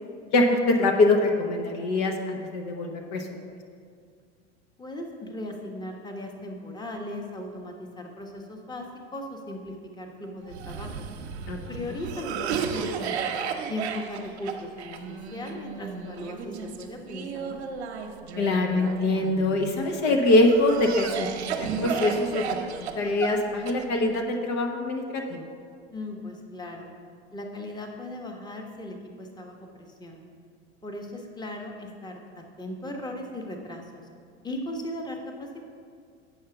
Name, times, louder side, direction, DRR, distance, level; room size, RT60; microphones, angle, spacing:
voice 1, 0.3-3.3 11.5-11.6 18.4-25.4, left 2 dB, 55° left, 3 dB, 1.0 m, -24 dB
voice 2, 4.8-11.1 11.7-13.4 13.7-17.6 25.9-26.9 27.3-30.2 30.8-33.9 34.4-35.7, left 1 dB, 15° left, 2 dB, 1.1 m, -37 dB
Cough, 10.5-19.7 20.3-24.2, right 7 dB, 90° right, 0.8 m, -34 dB
8.3 x 5.6 x 5.8 m, 2.2 s
hypercardioid pair, 90°, 32 cm